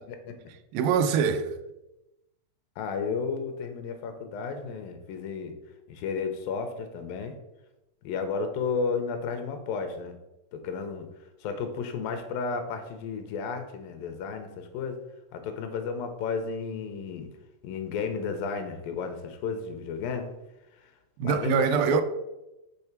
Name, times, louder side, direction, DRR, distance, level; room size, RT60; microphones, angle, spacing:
voice 1, 0.1-0.5 2.8-5.5 5.9-7.4 8.0-10.2 10.5-11.1 11.4-15.0 15.3-17.3 17.6-20.3 21.2-22.0, left 5 dB, 85° left, 2.5 m, -33 dB
voice 2, 0.7-1.5 21.2-22.0, right 7 dB, 85° right, 2.2 m, -24 dB
6.8 x 3.3 x 5.9 m
omnidirectional pair, 4.0 m